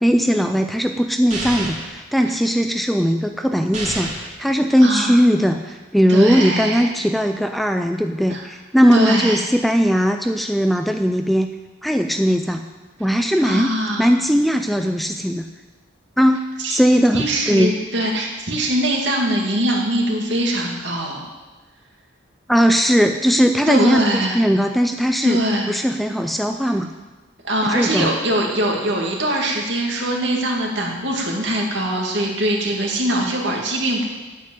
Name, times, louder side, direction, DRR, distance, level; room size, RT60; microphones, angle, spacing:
voice 1, 0.0-11.5 11.8-12.6 13.0-15.4 16.2-16.4 16.7-17.8 22.5-24.0 24.3-25.4 25.7-26.9 27.7-28.1, equal, ahead, 6 dB, 0.4 m, -18 dB
sound 1, 1.3-1.9 3.7-4.3, right 2 dB, 40° right, 2.8 m, -28 dB
voice 2, 4.8-5.2 6.1-6.9 8.3-8.5 8.9-9.4 13.4-14.1 16.6-16.8 17.1-21.2 23.7-24.4 25.2-25.7 27.4-34.0, right 1 dB, 65° right, 0 dB, 2.3 m, -22 dB
9.0 x 7.8 x 9.1 m, 1.2 s
head